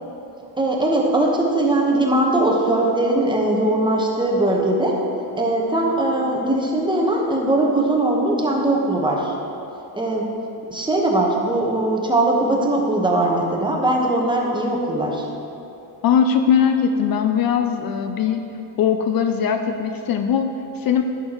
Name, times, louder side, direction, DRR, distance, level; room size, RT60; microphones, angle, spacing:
voice 1, 0.6-5.0 5.4-9.3 10.0-10.3 10.7-15.3, right 2 dB, 10° right, -1 dB, 1.1 m, -20 dB
voice 2, 16.0-18.4 18.8-21.0, left 7 dB, 55° left, 6 dB, 0.5 m, -20 dB
11.0 x 6.8 x 3.0 m, 2.8 s
cardioid pair, 115°, 42 cm